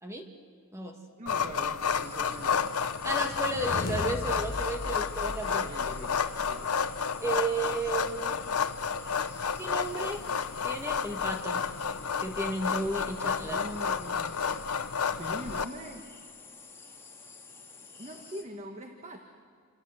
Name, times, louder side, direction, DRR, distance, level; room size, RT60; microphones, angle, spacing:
voice 1, 1.2-2.8 5.4-6.8 13.5-14.5 15.1-16.1 18.0-19.2, right 1 dB, 30° right, 4 dB, 1.5 m, -43 dB
sound 1, 1.3-15.6, left 6 dB, 85° left, 1.0 m, -31 dB
sound 2, 1.9-18.4, left 4 dB, 10° left, 2.4 m, -50 dB
voice 2, 3.0-5.6 7.2-8.4 9.6-10.2 10.6-11.6 12.2-13.6, right 2 dB, 15° right, 3 dB, 1.7 m, -33 dB
sound 3, 3.2-6.5, left 2 dB, 40° left, 1.0 m, -38 dB
28.0 x 27.0 x 7.9 m, 2.2 s
head